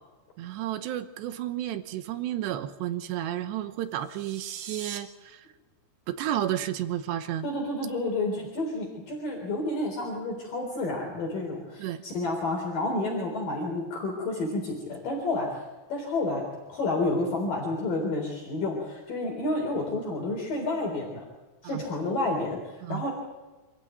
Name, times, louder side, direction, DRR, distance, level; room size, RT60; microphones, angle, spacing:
voice 1, 0.4-5.5 6.1-7.5 11.8-12.0 21.6-21.8 22.8-23.1, right 12 dB, 90° right, 10 dB, 3.2 m, -32 dB
sound 1, 3.9-5.0, right 8 dB, 65° right, 3.3 m, -41 dB
voice 2, 7.4-15.6 15.9-16.4 16.7-21.2 21.6-22.6 22.9-23.1, left 2 dB, 55° left, 0 dB, 5.3 m, -30 dB
27.0 x 15.0 x 9.3 m, 1.2 s
omnidirectional pair, 4.9 m